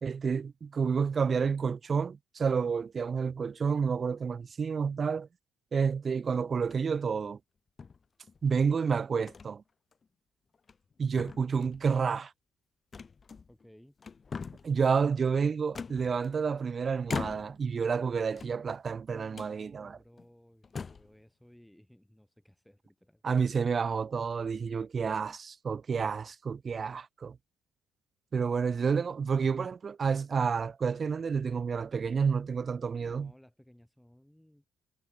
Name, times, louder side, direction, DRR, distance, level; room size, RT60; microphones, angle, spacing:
voice 1, 0.0-5.3 5.7-7.4 8.4-9.6 11.0-12.3 14.6-20.0 23.2-27.4 28.3-33.3, right 6 dB, 35° right, 0.3 m, -29 dB
sound 1, 6.6-7.0 7.8-8.5 9.3-9.5 9.9-10.0 10.5-10.9 11.2-11.9 12.9-13.7 14.0-14.8 15.7-16.6 17.1-17.7 18.3-19.0 19.3-19.6 20.2-20.3 20.6-21.1, left 5 dB, 35° left, 1.5 m, -41 dB
voice 2, 13.5-14.0 19.1-23.2 33.0-34.7, left 1 dB, 5° left, 4.2 m, -58 dB
cardioid pair, 105°, 0 cm